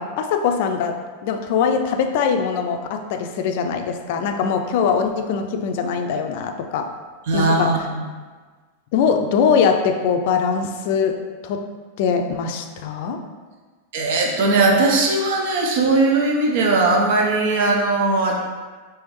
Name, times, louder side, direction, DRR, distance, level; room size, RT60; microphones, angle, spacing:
voice 1, 0.0-6.9 7.3-7.8 8.9-11.7 12.0-13.2, left 6 dB, 60° left, 6 dB, 0.4 m, -22 dB
voice 2, 7.3-8.0 13.9-18.3, right 3 dB, 65° right, 0 dB, 0.7 m, -19 dB
3.4 x 3.0 x 3.1 m, 1.4 s
hypercardioid pair, 100°, 0 cm